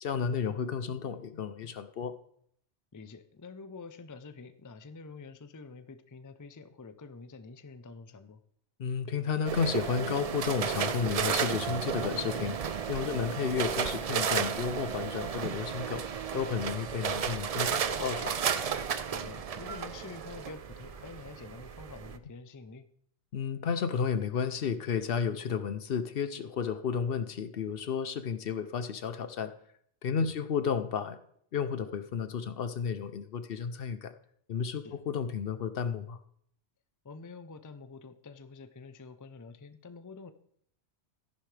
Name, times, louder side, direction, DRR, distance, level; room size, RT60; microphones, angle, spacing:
voice 1, 0.0-2.1 8.8-12.6 12.9-16.0 16.3-18.4 23.3-29.5 30.0-31.2 31.5-34.1 34.5-36.2, left 6 dB, 60° left, 11 dB, 0.8 m, -32 dB
voice 2, 2.9-8.4 13.0-13.2 19.1-22.9 30.1-30.3 34.8-35.0 37.0-40.3, left 4 dB, 25° left, 11 dB, 0.4 m, -47 dB
sound 1, 9.5-22.2, right 7 dB, 55° right, 0.4 m, -33 dB
14.0 x 11.0 x 3.3 m, 0.66 s
omnidirectional pair, 1.2 m